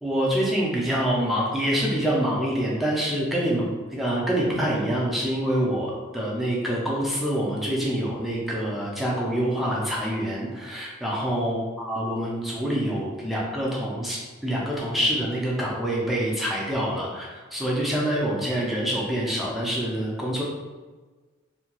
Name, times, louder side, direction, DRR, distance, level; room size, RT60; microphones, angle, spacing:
voice 1, 0.0-11.6 11.8-20.4, equal, ahead, -5 dB, 0.4 m, -26 dB
2.8 x 2.2 x 2.9 m, 1.3 s
head